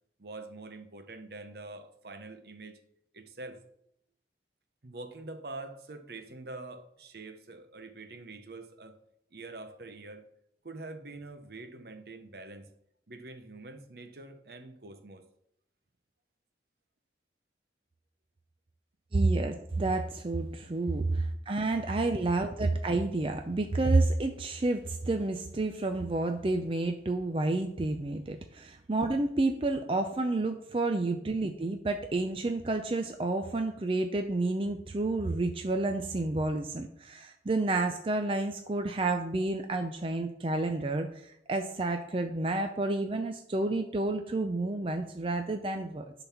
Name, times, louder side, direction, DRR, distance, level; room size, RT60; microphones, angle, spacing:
voice 1, 0.2-2.8 3.1-3.6 4.8-9.0 9.3-10.2 10.6-12.7 13.1-15.3 20.6-20.7 21.0-21.2 22.2-22.3, right 2 dB, 60° right, 0.8 m, -45 dB
voice 2, 19.1-46.1, right 2 dB, 30° right, 0.5 m, -30 dB
10.5 x 4.0 x 5.8 m
head